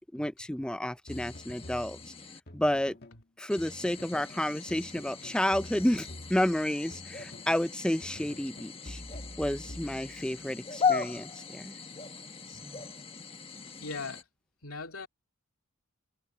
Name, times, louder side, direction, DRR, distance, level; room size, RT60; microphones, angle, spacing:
voice 1, 0.0-2.1 2.5-3.0 3.4-9.0 9.4-11.7 12.6-12.9, left 1 dB, 5° left, 0.5 m, -31 dB
sound 1, 1.1-3.2 3.6-4.3 4.7-7.7 8.0-10.4, left 1 dB, 45° left, 2.0 m, -47 dB
sound 2, 1.1-2.4 3.5-14.2, left 6 dB, 25° left, 1.5 m, -38 dB
voice 2, 13.8-14.2 14.6-15.1, left 4 dB, 75° left, 2.6 m, -39 dB
head